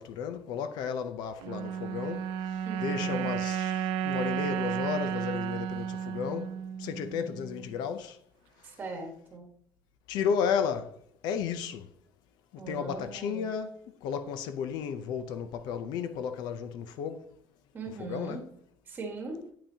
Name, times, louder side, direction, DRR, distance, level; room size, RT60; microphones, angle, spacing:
voice 1, 0.0-2.3 2.8-8.2 10.1-10.9 11.2-11.9 12.5-17.3 18.0-18.4, left 7 dB, 65° left, 0.5 m, -33 dB
sound 1, 1.4-7.8, right 8 dB, 90° right, 0.4 m, -33 dB
voice 2, 2.6-3.3 8.6-9.5 12.6-13.5 17.7-18.4 18.9-19.5, right 3 dB, 25° right, 1.3 m, -40 dB
8.7 x 5.7 x 2.8 m
cardioid pair, 180°, 8 cm